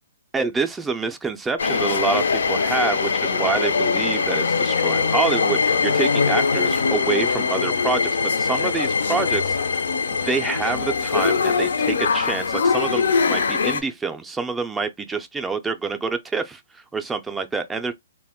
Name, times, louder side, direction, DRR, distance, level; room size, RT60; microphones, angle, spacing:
voice 1, 0.3-8.1 8.4-9.8 10.1-17.9, right 4 dB, 10° right, 0.3 m, -27 dB
sound 1, 1.6-13.8, left 5 dB, 80° left, 0.4 m, -22 dB
2.1 x 2.1 x 3.5 m
hypercardioid pair, 150°, 0 cm